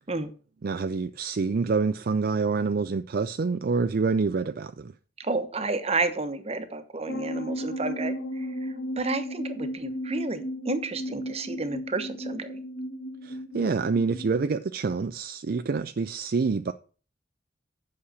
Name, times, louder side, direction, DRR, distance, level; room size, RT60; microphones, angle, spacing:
voice 1, 0.6-4.9 13.2-16.7, right 4 dB, 55° right, 0.4 m, -27 dB
voice 2, 5.2-12.6, right 3 dB, 35° right, 1.1 m, -31 dB
sound 1, 7.1-14.5, equal, 70° left, 1.7 m, -34 dB
8.6 x 6.5 x 5.7 m
head